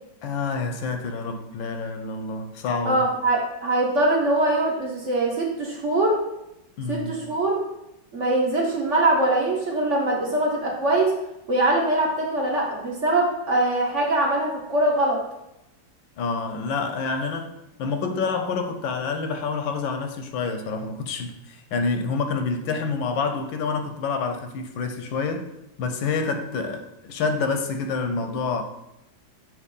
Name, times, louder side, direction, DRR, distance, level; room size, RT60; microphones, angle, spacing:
voice 1, 0.2-3.0 6.8-7.2 16.2-17.5 17.8-25.5 25.8-28.6, left 4 dB, 90° left, 1.5 m, -27 dB
voice 2, 2.8-6.2 6.9-7.6 8.1-11.1 11.5-15.2, right 1 dB, 50° right, 1.1 m, -22 dB
6.5 x 3.0 x 5.3 m
omnidirectional pair, 2.0 m